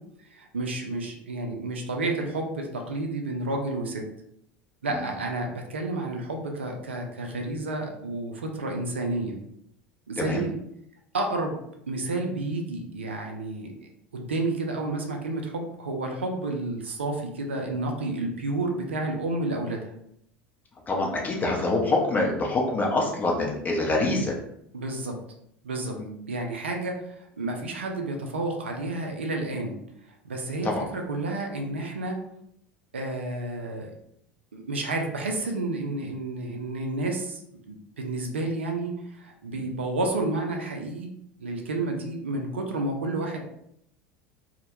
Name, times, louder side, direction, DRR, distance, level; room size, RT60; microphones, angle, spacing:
voice 1, 0.3-4.1 4.8-9.4 10.1-10.5 11.1-11.6 11.9-13.7 14.1-19.9 24.7-25.2 25.6-26.0 26.3-29.7 30.2-32.2 32.9-33.9 34.5-37.4 37.7-41.1 41.4-43.4, right 2 dB, 85° right, 2 dB, 0.3 m, -30 dB
voice 2, 20.9-24.4 26.0-26.2 30.6-30.9, left 2 dB, 25° left, -1 dB, 0.6 m, -25 dB
2.1 x 2.0 x 2.9 m, 0.75 s
hypercardioid pair, 75°, 6 cm